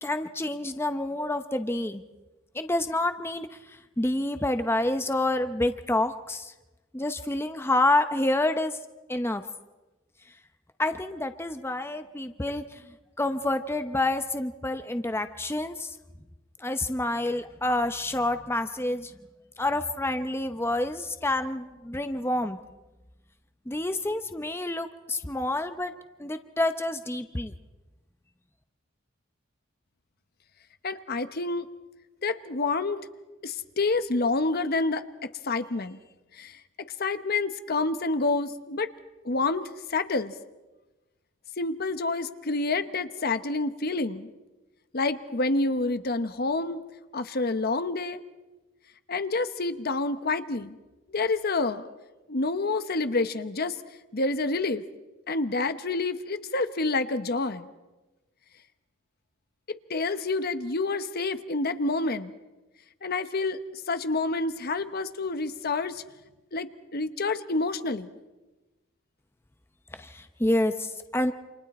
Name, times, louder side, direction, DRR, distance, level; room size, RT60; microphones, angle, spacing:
voice 1, 0.0-2.0 2.5-6.5 6.9-8.8 9.1-9.4 10.8-12.8 13.2-15.9 16.6-19.1 19.6-22.6 23.7-25.9 26.2-27.5 69.9-71.3, left 1 dB, 10° left, 8 dB, 0.8 m, -28 dB
voice 2, 30.8-31.7 32.2-33.0 33.4-36.0 36.3-36.6 37.0-38.9 39.2-40.3 41.6-44.3 44.9-46.8 47.1-48.2 49.1-50.8 51.1-51.9 52.3-53.8 54.1-54.8 55.3-57.7 59.7-62.3 63.0-63.6 63.9-66.0 66.5-68.1, left 3 dB, 50° left, 11 dB, 1.0 m, -28 dB
29.0 x 27.0 x 4.3 m, 1.1 s
head